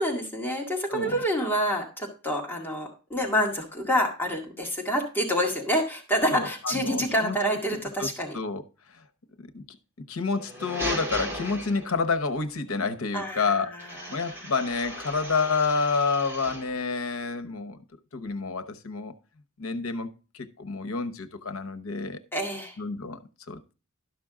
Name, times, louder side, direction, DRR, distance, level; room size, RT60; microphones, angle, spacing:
voice 1, 0.0-8.4 11.1-11.3 13.1-13.5 14.0-14.2 22.3-22.8, equal, 10° left, 2.0 m, -27 dB
voice 2, 0.9-1.2 6.3-7.4 8.0-8.1 8.3-8.6 8.9-9.0 9.4-9.8 10.1-13.7 14.1-17.8 18.1-19.1 19.6-20.1 20.3-22.2 22.8-23.2 23.5-23.6, left 4 dB, 85° left, 1.0 m, -29 dB
sound 1, 10.3-12.2 13.8-16.8, equal, 10° right, 2.3 m, -36 dB
12.5 x 6.1 x 3.7 m
head